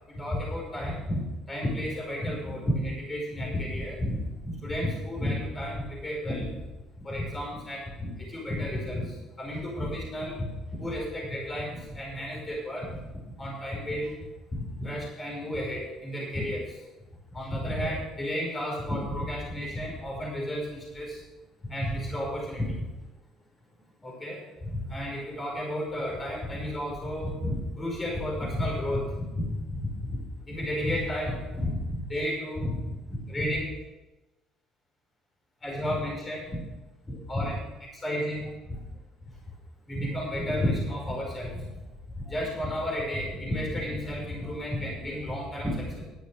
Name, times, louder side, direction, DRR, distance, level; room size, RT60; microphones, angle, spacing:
voice 1, 0.1-4.2 4.4-6.5 7.0-9.1 9.4-10.5 10.8-12.9 13.4-14.1 14.5-16.7 17.3-21.2 21.6-22.7 24.0-24.4 24.7-29.5 30.0-30.2 30.5-33.6 35.6-36.6 37.1-37.6 38.0-38.5 39.9-41.5 42.3-46.0, equal, 25° left, -3 dB, 5.3 m, -32 dB
12.0 x 8.2 x 6.7 m, 1.1 s
cardioid pair, 95°, 0 cm